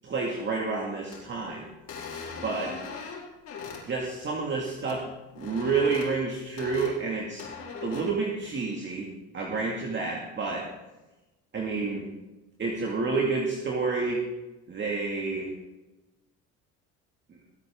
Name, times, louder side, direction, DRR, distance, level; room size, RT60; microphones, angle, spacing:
voice 1, 0.0-1.7 2.4-2.7 3.9-5.0 5.4-7.4 7.8-9.1 9.3-10.7 11.5-12.0 12.6-14.2 14.7-15.5, right 4 dB, 35° right, -1 dB, 2.1 m, -29 dB
sound 1, 1.1-1.2 1.9-3.8 4.8-5.0 5.3-6.1 6.6-6.9 7.4-8.0, left 5 dB, 55° left, 5.2 m, -39 dB
22.0 x 8.0 x 3.7 m, 1.1 s
supercardioid pair, 85°, 34 cm